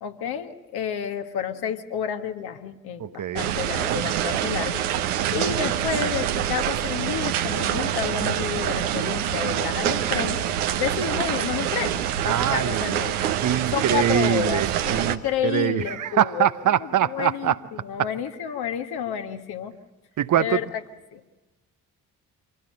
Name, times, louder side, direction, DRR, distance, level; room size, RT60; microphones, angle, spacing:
voice 1, 0.0-4.8 5.3-10.4 10.8-13.1 13.7-16.5 17.0-19.7 20.4-20.7 21.1-21.2, left 9 dB, 60° left, 1.7 m, -30 dB
voice 2, 3.0-3.5 12.2-13.0 13.4-17.6 18.0-18.1 20.2-20.6, right 10 dB, 45° right, 0.8 m, -24 dB
sound 1, 3.4-15.2, right 10 dB, 75° right, 1.0 m, -26 dB
26.0 x 16.5 x 7.7 m
figure-of-eight pair, 40°, 44 cm